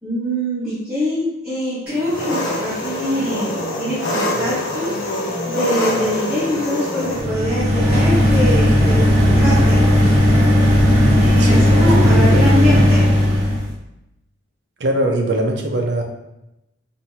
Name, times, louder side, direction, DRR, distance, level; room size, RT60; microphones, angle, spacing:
voice 1, 0.0-5.2 5.4-9.8 11.1-13.1, equal, 10° right, -12 dB, 1.0 m, -24 dB
Engine, 2.0-7.2, left 1 dB, 90° left, 0.9 m, -24 dB
sound 1, 7.0-13.7, equal, 35° right, 0.8 m, -14 dB
voice 2, 11.4-12.8 14.8-16.0, right 1 dB, 60° right, 2 dB, 0.5 m, -22 dB
4.4 x 2.6 x 2.7 m, 0.89 s
head